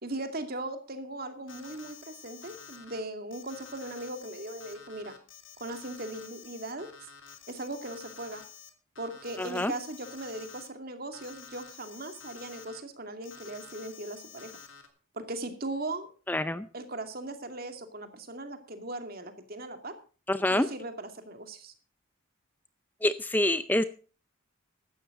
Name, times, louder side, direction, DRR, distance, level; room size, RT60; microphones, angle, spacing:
voice 1, 0.0-5.1 5.6-6.9 7.5-8.4 9.0-14.5 15.1-16.1 16.7-19.9 20.5-21.7, right 2 dB, 50° right, 7 dB, 2.4 m, -38 dB
Alarm, 1.5-3.0 3.3-8.7 8.9-10.7 11.1-12.8 13.2-14.9, left 7 dB, 75° left, 2.7 m, -50 dB
voice 2, 9.4-9.7 16.3-16.7 20.3-20.7 23.0-23.8, left 1 dB, 10° left, 12 dB, 0.5 m, -26 dB
16.0 x 12.5 x 3.8 m, 0.38 s
head